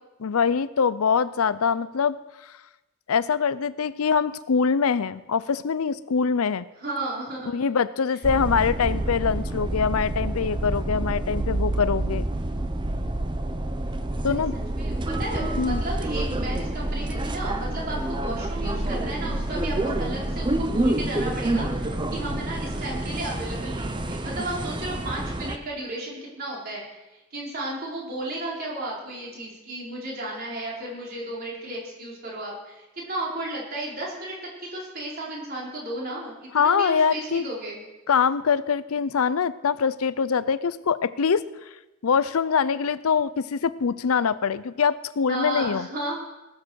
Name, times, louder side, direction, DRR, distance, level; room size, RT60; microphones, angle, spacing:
voice 1, 0.2-2.2 3.1-6.6 7.5-12.2 14.2-14.6 15.6-15.8 36.5-37.5 38.1-41.4 42.0-45.9, left 6 dB, 90° left, 16 dB, 0.5 m, -23 dB
voice 2, 6.8-7.5 14.7-37.8 45.3-46.1, right 1 dB, 45° right, -4 dB, 4.5 m, -34 dB
sound 1, 8.2-25.6, right 1 dB, 20° right, 0.7 m, -28 dB
19.0 x 7.4 x 6.4 m, 1.0 s
head